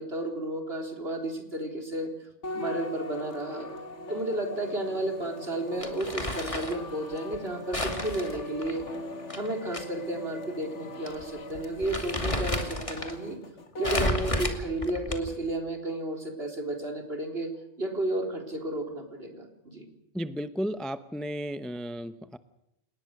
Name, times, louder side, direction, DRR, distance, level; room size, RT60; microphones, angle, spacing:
voice 1, 0.0-2.1 2.5-3.7 4.1-8.9 9.4-13.4 13.8-17.5 17.8-19.9, right 1 dB, 55° right, 4 dB, 4.3 m, -32 dB
sound 1, 2.4-14.1, left 2 dB, 75° left, 2.1 m, -41 dB
Crumpling crinkling, 5.8-6.8 7.7-9.8 10.2-10.3 11.1-11.2 11.6-13.1 13.8-15.4, left 1 dB, 25° left, 2.7 m, -31 dB
voice 2, 20.1-22.4, equal, ahead, 12 dB, 0.7 m, -34 dB
29.5 x 19.0 x 6.6 m, 0.85 s
omnidirectional pair, 1.2 m